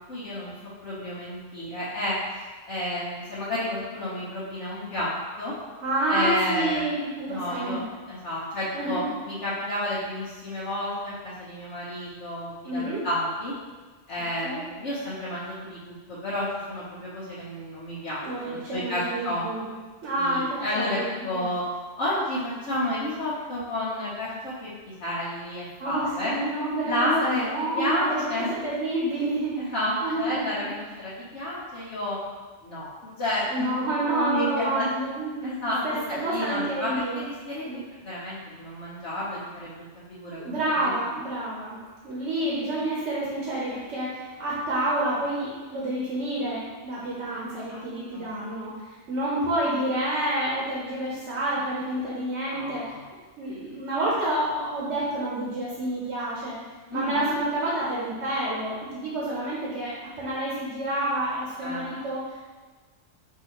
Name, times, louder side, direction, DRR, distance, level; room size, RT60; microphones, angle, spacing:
voice 1, 0.1-0.5 0.8-2.2 2.7-5.1 5.4-5.5 6.1-6.9 7.3-7.8 8.1-13.5 14.1-19.4 20.1-21.6 22.0-26.3 26.9-27.5 27.7-28.5 29.6-32.2 32.6-33.7 34.1-34.9 35.4-35.8 36.1-39.8 40.1-40.9 47.3-47.8 48.1-48.3 52.5-53.0 56.9-57.3 61.6-61.9, left 1 dB, 85° left, -11 dB, 1.4 m, -31 dB
voice 2, 5.8-7.8 8.7-9.1 12.6-13.0 14.4-14.6 18.2-19.7 20.0-21.1 21.3-21.4 25.8-28.2 28.5-29.7 30.0-30.7 33.5-37.2 37.6-37.8 40.4-41.8 42.0-53.0 53.4-56.6 56.9-62.4, right 1 dB, 85° right, -6 dB, 1.2 m, -29 dB
6.1 x 2.8 x 2.9 m, 1.4 s
omnidirectional pair, 1.2 m